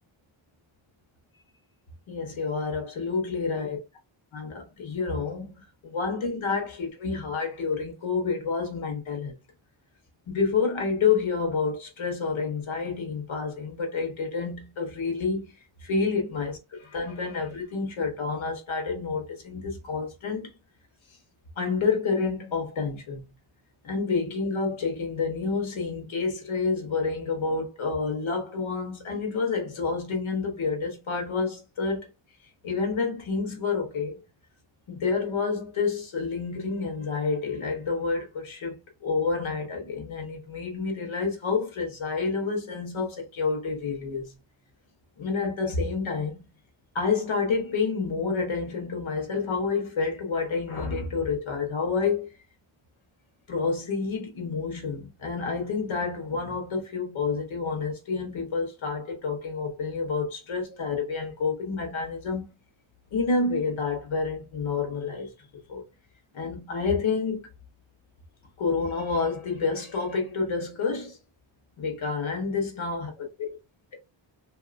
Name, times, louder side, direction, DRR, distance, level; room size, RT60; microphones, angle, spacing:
voice 1, 2.1-3.8 4.3-9.3 10.3-15.5 15.8-16.6 16.8-20.5 21.6-23.2 23.8-32.1 32.6-34.2 34.9-44.3 45.2-46.5 46.9-52.3 53.5-62.4 63.1-65.3 65.7-65.8 66.3-67.5 68.6-71.2 71.8-73.3, left 4 dB, 85° left, 1.2 m, -29 dB
3.1 x 2.7 x 2.5 m
wide cardioid pair, 120°, 46 cm